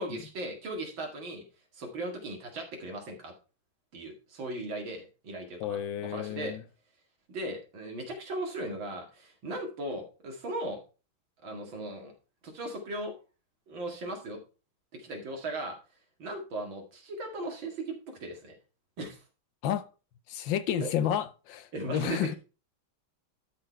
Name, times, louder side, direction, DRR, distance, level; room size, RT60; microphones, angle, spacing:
voice 1, 0.0-1.4 1.7-3.3 3.9-6.6 7.3-10.8 11.4-12.1 12.4-13.1 13.7-14.4 14.9-15.8 16.2-18.6 19.0-19.2 20.8-20.9 21.7-22.3, right 1 dB, 70° right, 2.9 m, -37 dB
voice 2, 5.6-6.6 19.6-19.9 20.3-22.3, left 10 dB, 75° left, 1.3 m, -31 dB
12.0 x 4.3 x 4.4 m
omnidirectional pair, 2.2 m